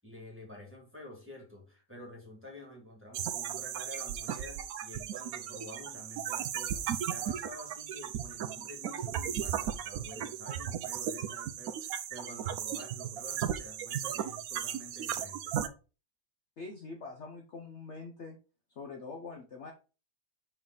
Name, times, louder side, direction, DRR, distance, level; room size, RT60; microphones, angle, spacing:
voice 1, 0.0-15.6, left 1 dB, 10° right, 1.8 m, -49 dB
sound 1, 3.1-15.7, right 10 dB, 70° right, 1.0 m, -36 dB
voice 2, 16.6-18.4 18.7-19.7, left 4 dB, 55° left, 1.0 m, -44 dB
5.5 x 4.6 x 3.9 m
omnidirectional pair, 1.8 m